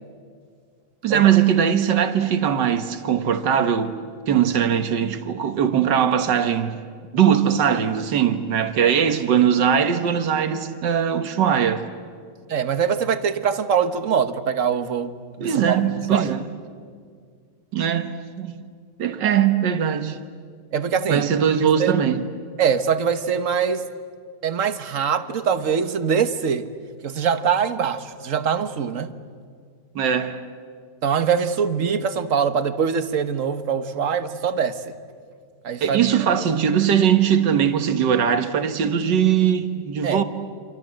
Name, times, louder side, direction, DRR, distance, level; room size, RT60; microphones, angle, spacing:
voice 1, 1.0-3.9 4.3-6.8 7.1-11.9 15.4-16.5 17.7-18.5 19.0-20.2 21.1-22.2 30.0-30.4 35.8-40.2, right 8 dB, 75° right, 2.0 m, -20 dB
voice 2, 12.5-15.8 16.1-16.3 20.7-21.3 21.8-21.9 22.6-23.9 24.4-26.7 27.0-29.1 31.0-34.9 35.6-36.3 40.0-40.2, right 7 dB, 50° right, 1.4 m, -23 dB
29.0 x 26.5 x 7.6 m
omnidirectional pair, 1.9 m